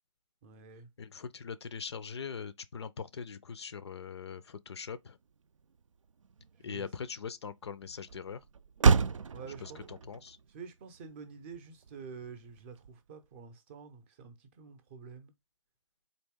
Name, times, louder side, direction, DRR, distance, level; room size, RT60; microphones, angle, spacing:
voice 1, 0.4-0.9 6.6-6.9 9.3-9.9 10.5-15.3, right 5 dB, 25° right, 0.6 m, -48 dB
voice 2, 1.0-5.2 6.6-8.4 9.6-10.4, left 6 dB, 55° left, 0.4 m, -41 dB
Motor vehicle (road), 4.7-13.4, right 5 dB, 75° right, 0.4 m, -33 dB
4.0 x 2.8 x 3.5 m
figure-of-eight pair, 145°, 17 cm